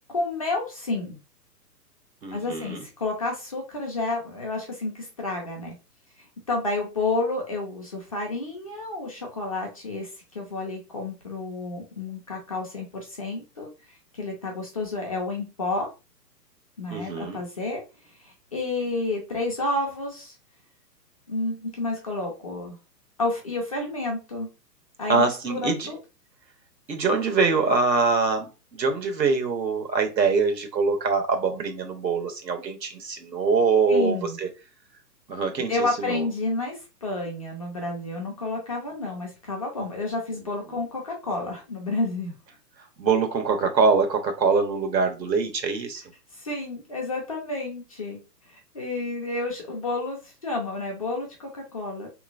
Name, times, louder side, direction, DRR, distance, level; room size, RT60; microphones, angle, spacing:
voice 1, 0.1-1.2 2.3-5.7 6.5-10.1 10.3-13.7 14.1-15.9 16.8-17.8 18.2-20.3 21.3-22.8 23.2-24.5 25.0-26.0 33.9-34.4 35.7-42.3 46.3-48.2 48.5-52.1, left 2 dB, 25° left, 0.4 m, -30 dB
voice 2, 2.2-2.8 16.9-17.4 25.1-25.9 26.9-34.5 35.3-36.2 43.0-46.0, right 4 dB, 85° right, 1.0 m, -24 dB
3.0 x 3.0 x 2.4 m
hypercardioid pair, 135°, 49 cm